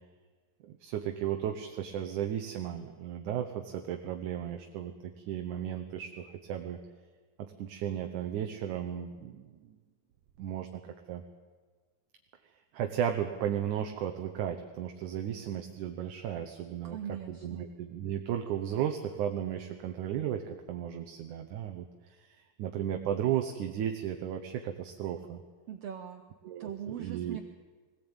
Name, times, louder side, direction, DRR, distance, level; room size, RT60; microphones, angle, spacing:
voice 1, 0.6-6.8 7.4-9.6 10.4-10.8 11.1-11.2 12.7-21.9 22.2-25.4 26.4-26.7 27.0-27.4, right 10 dB, 70° right, 5 dB, 2.2 m, -35 dB
voice 2, 16.8-17.6 25.7-26.2 26.6-27.4, right 9 dB, 90° right, 7 dB, 1.3 m, -40 dB
21.0 x 17.5 x 8.9 m, 1.4 s
omnidirectional pair, 4.2 m